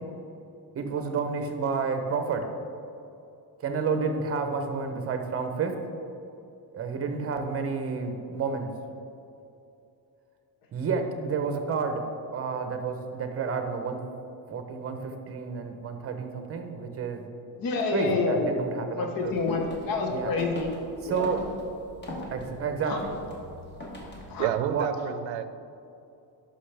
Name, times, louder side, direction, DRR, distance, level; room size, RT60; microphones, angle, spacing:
voice 1, 0.7-2.5 3.6-5.7 6.7-8.7 10.7-12.0 12.3-14.0 14.5-17.2 17.9-19.3 20.1-20.3 21.0-21.4 22.3-23.2 24.6-24.9, right 5 dB, 30° right, 6 dB, 0.8 m, -30 dB
voice 2, 17.5-18.6 19.0-20.7 21.0-21.3 22.8-23.0 24.3-24.5, left 3 dB, 50° left, 2 dB, 1.1 m, -28 dB
sound 1, 19.2-24.4, left 1 dB, 25° left, 1.3 m, -41 dB
voice 3, 24.3-25.5, right 11 dB, 85° right, 11 dB, 0.6 m, -29 dB
11.5 x 5.7 x 3.4 m, 2.7 s
cardioid pair, 160°, 44 cm